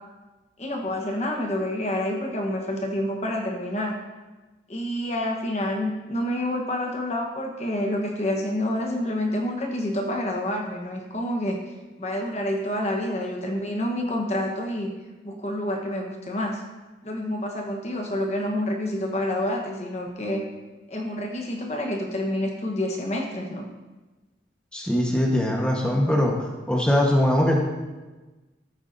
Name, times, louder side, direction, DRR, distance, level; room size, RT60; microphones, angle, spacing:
voice 1, 0.6-3.9 4.7-11.6 12.0-14.9 15.2-16.6 17.0-20.4 20.9-23.7, left 1 dB, 35° left, 1 dB, 1.0 m, -28 dB
voice 2, 24.7-26.3 26.7-27.6, left 1 dB, 5° left, -1 dB, 1.1 m, -21 dB
13.5 x 8.9 x 2.6 m, 1.2 s
head